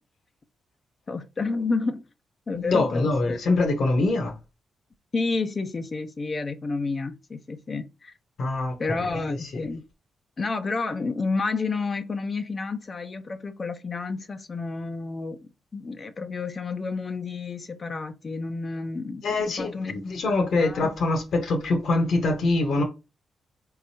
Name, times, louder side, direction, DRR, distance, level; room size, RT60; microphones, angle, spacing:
voice 1, 1.1-2.0 2.5-3.4 5.1-8.1 8.8-9.8 10.4-19.9 20.6-20.9, left 3 dB, 40° left, 0.6 m, -30 dB
voice 2, 2.5-4.4 8.4-9.6 19.2-22.8, left 2 dB, 70° left, 1.3 m, -24 dB
4.1 x 3.8 x 2.8 m
supercardioid pair, 60°, 0 cm